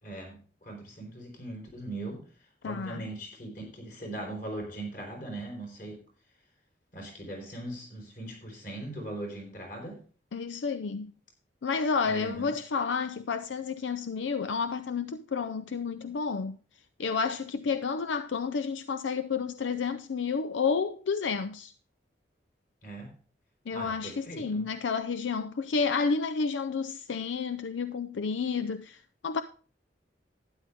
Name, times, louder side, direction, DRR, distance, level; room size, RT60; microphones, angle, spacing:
voice 1, 0.0-2.3 2.6-6.0 6.9-10.0 12.0-12.5 22.8-23.2 23.7-24.7, right 1 dB, 45° left, 4.2 m, -40 dB
voice 2, 2.6-3.0 10.3-11.1 11.6-16.6 17.0-21.7 23.7-29.4, left 5 dB, 85° left, 0.5 m, -30 dB
12.0 x 9.8 x 3.5 m
head